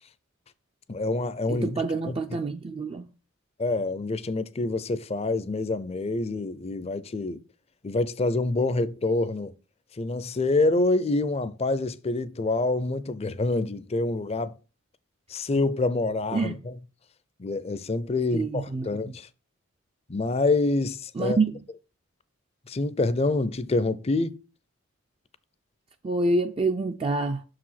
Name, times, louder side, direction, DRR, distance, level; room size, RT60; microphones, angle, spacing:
voice 1, 0.9-2.2 3.6-7.4 7.8-9.5 10.0-14.5 15.3-16.7 17.4-19.3 20.1-21.4 22.7-24.4, left 2 dB, 30° left, 0.5 m, -26 dB
voice 2, 1.5-3.1 16.3-16.6 18.3-19.1 21.2-21.6 26.0-27.4, right 3 dB, 25° right, 0.3 m, -27 dB
6.5 x 4.8 x 5.7 m
head